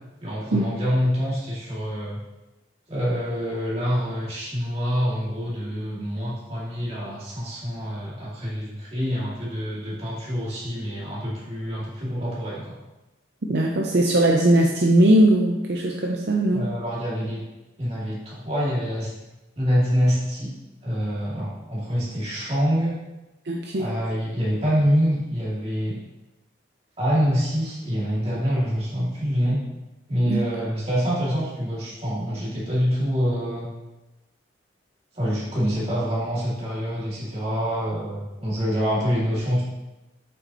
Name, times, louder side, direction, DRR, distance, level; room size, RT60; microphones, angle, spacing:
voice 1, 0.2-2.2 2.9-12.8 16.5-17.4 17.8-19.1 19.6-20.5 20.8-23.0 23.8-26.0 27.0-29.6 30.1-33.7 35.1-39.6, equal, 35° right, -7 dB, 2.4 m, -26 dB
voice 2, 13.5-16.7 23.5-23.9 30.3-30.7, right 1 dB, 60° right, 0 dB, 0.6 m, -20 dB
8.0 x 5.8 x 3.0 m, 1.0 s
head